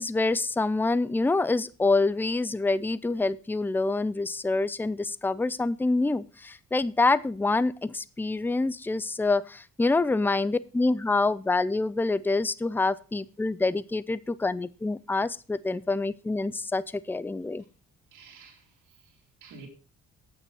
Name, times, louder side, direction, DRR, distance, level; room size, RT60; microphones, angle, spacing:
voice 1, 0.0-17.6, left 3 dB, 5° left, 0.5 m, -26 dB
voice 2, 18.1-19.7, right 4 dB, 85° right, 3.3 m, -51 dB
8.8 x 8.3 x 5.7 m
cardioid pair, 90°, 30 cm